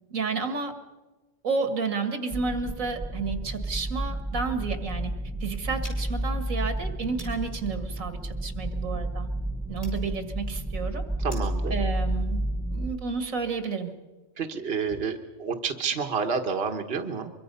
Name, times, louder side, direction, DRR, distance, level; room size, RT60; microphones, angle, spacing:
voice 1, 0.1-0.7 1.4-5.1 5.4-9.3 9.7-11.0 11.7-12.4 12.7-13.9, right 4 dB, 80° right, 8 dB, 2.1 m, -31 dB
sound 1, 2.3-12.9, right 1 dB, 5° right, 0.7 m, -31 dB
sound 2, 5.8-11.7, left 1 dB, 55° left, 5.8 m, -52 dB
voice 2, 11.2-11.7 14.4-17.3, right 5 dB, 50° right, 5 dB, 1.4 m, -29 dB
24.0 x 23.5 x 5.5 m, 1.2 s
omnidirectional pair, 1.4 m